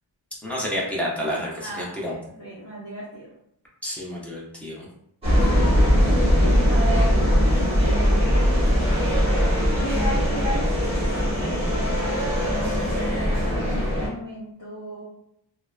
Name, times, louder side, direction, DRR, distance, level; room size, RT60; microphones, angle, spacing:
voice 1, 0.4-2.1 3.8-4.9, equal, 5° left, -5 dB, 0.6 m, -29 dB
voice 2, 1.6-3.3 6.0-8.1 9.8-10.7 11.2-12.7 13.5-15.0, right 1 dB, 45° left, -9 dB, 0.8 m, -34 dB
sound 1, 5.2-14.1, equal, 15° right, 1.0 m, -20 dB
2.7 x 2.0 x 2.3 m, 0.75 s
wide cardioid pair, 140°, 44 cm